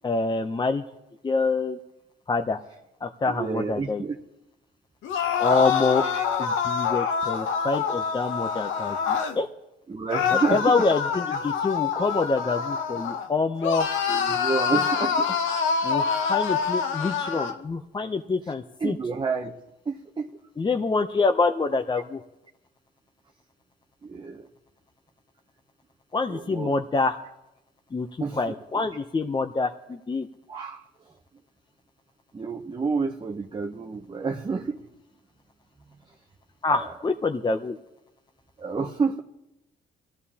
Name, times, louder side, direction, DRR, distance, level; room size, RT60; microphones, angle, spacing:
voice 1, 0.0-0.8 1.2-1.8 2.3-2.6 3.0-4.0 5.4-6.0 6.4-9.5 10.5-13.9 15.8-19.0 20.6-22.2 26.1-27.2 27.9-28.1 28.3-30.3 36.6-37.8, left 3 dB, 20° left, 6 dB, 0.6 m, -26 dB
voice 2, 3.3-4.2 6.1-6.2 9.9-10.8 13.9-15.4 18.8-19.5 19.9-20.4 24.0-24.5 26.3-26.8 28.2-28.5 30.5-30.8 32.3-34.8 36.7-36.9 38.6-39.2, right 4 dB, 25° right, 2 dB, 0.8 m, -29 dB
sound 1, 5.0-9.4 10.1-13.3 13.6-17.6, left 6 dB, 80° left, 0.8 m, -26 dB
21.0 x 14.0 x 2.8 m, 0.91 s
cardioid pair, 90°, 20 cm